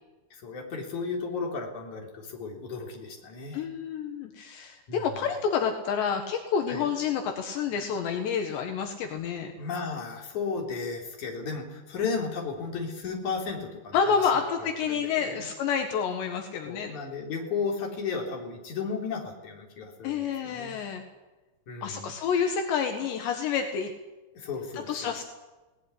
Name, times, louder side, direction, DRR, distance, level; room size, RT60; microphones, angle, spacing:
voice 1, 0.3-3.7 4.9-5.0 6.7-6.9 9.6-14.0 14.3-14.4 14.9-15.5 16.7-20.8 21.7-22.1 24.3-25.1, left 5 dB, 45° left, 1 dB, 4.7 m, -34 dB
voice 2, 3.5-9.5 13.9-16.9 20.0-21.0 21.8-23.9 24.9-25.2, left 6 dB, 75° left, 4 dB, 3.8 m, -29 dB
20.5 x 19.0 x 9.9 m, 1.1 s
omnidirectional pair, 5.2 m